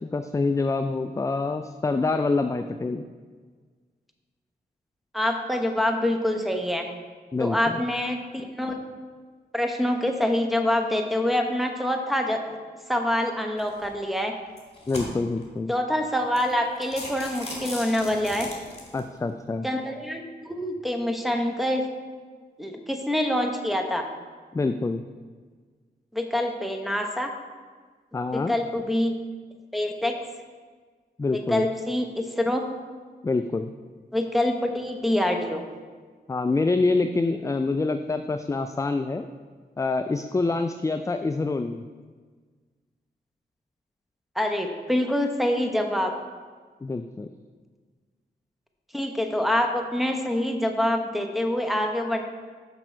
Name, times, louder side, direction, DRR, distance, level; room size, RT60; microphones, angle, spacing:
voice 1, 0.0-3.1 7.3-7.8 14.9-15.7 18.9-19.7 24.5-25.0 28.1-28.5 31.2-31.6 33.2-33.7 36.3-39.3 39.8-41.8 46.8-47.3, left 3 dB, 15° left, 8 dB, 0.3 m, -26 dB
voice 2, 5.1-6.9 7.4-8.8 9.5-12.6 12.9-14.3 15.7-18.5 19.6-21.8 22.6-24.0 26.1-27.3 28.3-29.1 29.7-30.1 31.3-32.6 34.1-35.6 44.3-46.1 48.9-52.2, left 1 dB, ahead, 4 dB, 1.0 m, -26 dB
sound 1, 13.6-13.9 14.5-15.5 16.0-16.1 16.4-16.5 16.8-19.0, left 2 dB, 35° left, 2.3 m, -38 dB
6.0 x 6.0 x 4.5 m, 1.5 s
cardioid pair, 45°, 18 cm